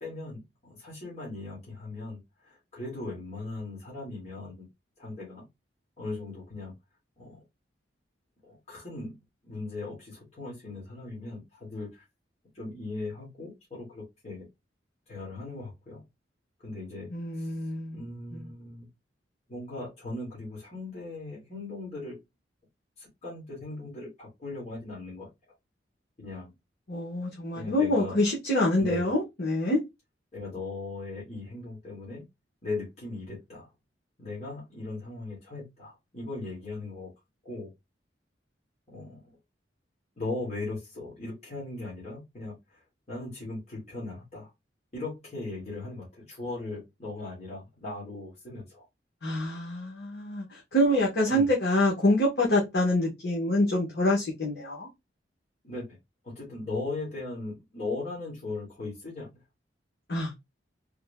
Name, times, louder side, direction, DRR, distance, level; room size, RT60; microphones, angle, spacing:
voice 1, 0.0-4.7 5.0-5.4 6.0-6.7 7.2-7.4 8.4-9.1 9.4-12.0 12.5-14.5 15.1-16.0 16.6-17.6 17.9-18.9 19.5-22.1 23.0-25.3 26.2-26.5 27.6-28.2 28.8-29.1 30.3-32.3 32.6-33.7 34.2-37.1 37.5-37.7 38.9-39.2 40.2-42.8 43.1-44.5 44.9-48.9 51.3-51.5 55.6-56.0 56.2-59.4, left 2 dB, 40° left, 1.7 m, -38 dB
voice 2, 17.1-18.0 18.3-18.5 26.9-29.8 49.2-54.9 60.1-60.3, left 1 dB, 65° left, 1.1 m, -26 dB
3.5 x 2.2 x 3.4 m
head